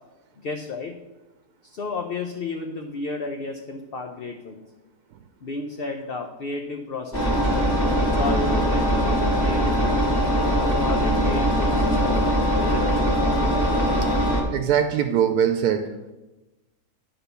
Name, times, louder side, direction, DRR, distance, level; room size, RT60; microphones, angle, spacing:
voice 1, 0.4-0.9 1.6-4.6 5.4-7.6 8.1-10.0 10.7-13.0, left 3 dB, 55° left, 4 dB, 0.7 m, -32 dB
Engine, 7.1-14.4, equal, 15° left, 1.8 m, -21 dB
voice 2, 14.5-16.1, right 8 dB, 90° right, 7 dB, 1.1 m, -22 dB
9.8 x 3.9 x 6.8 m, 1.1 s
omnidirectional pair, 1.6 m